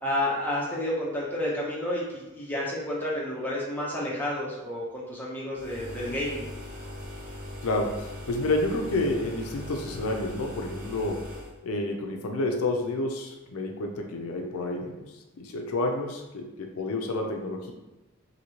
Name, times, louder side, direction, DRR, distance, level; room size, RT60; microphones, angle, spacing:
voice 1, 0.0-6.5, left 1 dB, 10° left, -6 dB, 0.6 m, -30 dB
sound 1, 5.5-11.6, left 1 dB, 40° right, 0.6 m, -40 dB
voice 2, 7.6-11.3 11.6-15.0 15.3-17.7, left 2 dB, 80° left, 2 dB, 0.4 m, -29 dB
2.9 x 2.7 x 2.8 m, 1.0 s
head